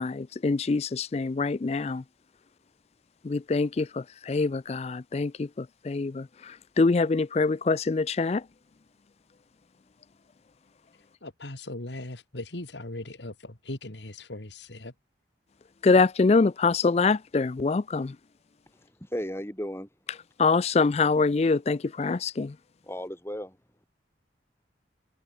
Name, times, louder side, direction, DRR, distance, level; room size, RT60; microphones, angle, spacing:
voice 1, 0.0-2.0 3.2-8.4 15.8-18.2 20.4-22.6, left 4 dB, 35° left, 0.4 m, -25 dB
voice 2, 10.9-14.9, left 2 dB, 80° left, 2.4 m, -39 dB
voice 3, 19.0-19.9 22.9-23.5, equal, 15° left, 3.2 m, -34 dB
head